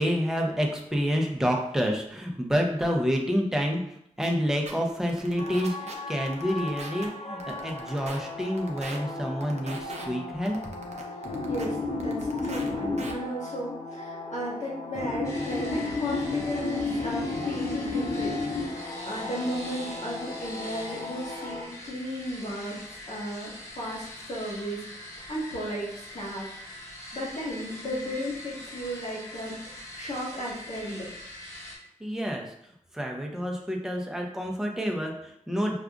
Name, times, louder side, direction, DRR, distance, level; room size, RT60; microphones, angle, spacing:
voice 1, 0.0-3.8 4.2-10.6 32.0-32.5 32.9-35.8, equal, 5° right, 0 dB, 0.7 m, -28 dB
sound 1, 4.2-4.3 4.7-4.8 5.1-5.9 6.3-7.1 7.4-8.2 8.6-9.0 9.4-10.1 10.5-11.7 12.0-12.7 13.0-13.1, right 3 dB, 60° right, 0.6 m, -40 dB
sound 2, 5.4-21.6, left 2 dB, 55° left, 0.6 m, -34 dB
voice 2, 11.5-18.4 18.7-22.8 23.1-25.0 25.3-26.8 27.1-31.1, equal, 70° left, -6 dB, 1.4 m, -34 dB
sound 3, 15.2-31.8, left 1 dB, 25° left, 1.1 m, -43 dB
4.9 x 2.4 x 2.3 m, 0.73 s
cardioid pair, 60°, 13 cm